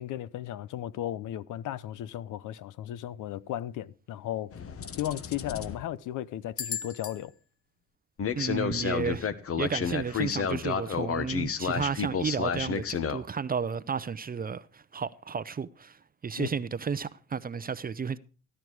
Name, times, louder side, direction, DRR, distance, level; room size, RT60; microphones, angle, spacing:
voice 1, 0.0-4.5 5.0-7.3 16.4-16.5, left 12 dB, 85° left, 0.8 m, -35 dB
sound 1, 4.5-5.8 6.6-7.1 8.2-13.2, left 7 dB, 50° left, 1.2 m, -31 dB
voice 2, 8.4-9.3 9.6-18.2, right 6 dB, 30° right, 0.6 m, -33 dB
15.0 x 11.0 x 4.7 m
cardioid pair, 90°, 30 cm